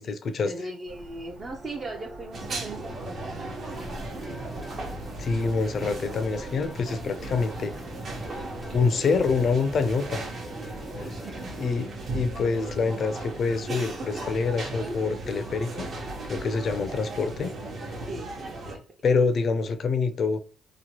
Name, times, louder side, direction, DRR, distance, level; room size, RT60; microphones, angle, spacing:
voice 1, 0.4-3.5 4.2-4.4 10.8-11.7 12.0-12.1 18.0-18.8, right 2 dB, 40° right, 0.6 m, -39 dB
sound 1, 0.9-8.8, right 1 dB, 80° right, 1.0 m, -46 dB
sound 2, 2.3-18.8, right 2 dB, 55° right, 0.9 m, -36 dB
sound 3, 3.7-11.7, left 1 dB, 5° left, 0.5 m, -44 dB
voice 2, 5.2-7.7 8.7-10.2 11.6-15.9 16.3-17.5 19.0-20.4, left 4 dB, 55° left, 0.5 m, -26 dB
2.9 x 2.2 x 2.9 m
cardioid pair, 90°, 0 cm